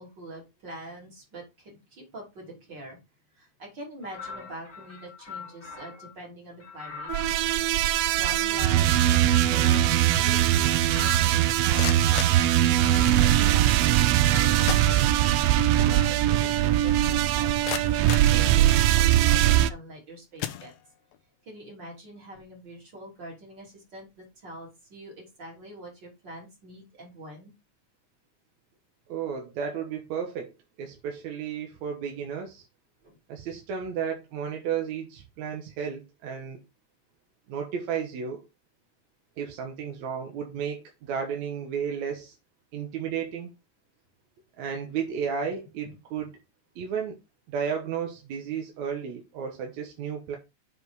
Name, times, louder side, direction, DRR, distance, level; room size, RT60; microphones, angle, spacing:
voice 1, 0.0-3.0 3.4-7.1 8.2-12.0 12.8-15.3 15.7-20.7 21.4-27.5 33.0-33.2 45.8-46.0, right 1 dB, 35° right, 3.7 m, -44 dB
sound 1, 4.0-6.1 6.6-11.7 12.4-14.0 14.3-16.3, left 6 dB, 25° left, 2.0 m, -43 dB
sound 2, 7.1-19.7, right 13 dB, 85° right, 1.4 m, -21 dB
sound 3, 11.6-13.3 14.2-14.3 14.6-15.5 15.9-16.0 16.6-16.7 17.2-19.1 19.7-19.9 20.4-21.2, left 11 dB, 75° left, 2.0 m, -37 dB
voice 2, 29.1-30.5 30.8-32.7 33.3-36.6 37.5-38.4 39.4-42.3 42.7-43.5 44.6-46.3 46.8-47.2 47.5-50.4, right 7 dB, 70° right, 2.5 m, -33 dB
7.6 x 5.0 x 4.8 m
omnidirectional pair, 3.4 m